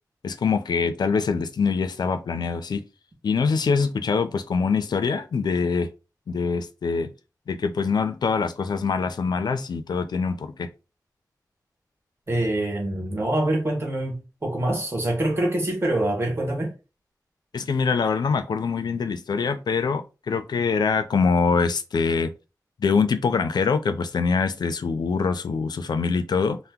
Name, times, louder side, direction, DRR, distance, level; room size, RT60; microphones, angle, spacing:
voice 1, 0.2-2.8 3.2-5.9 6.3-7.1 7.5-10.7 17.5-22.3 22.8-26.6, left 5 dB, 85° left, 0.4 m, -24 dB
voice 2, 12.3-16.7, right 1 dB, 35° right, 1.2 m, -25 dB
2.7 x 2.0 x 3.5 m
wide cardioid pair, 80°, 7 cm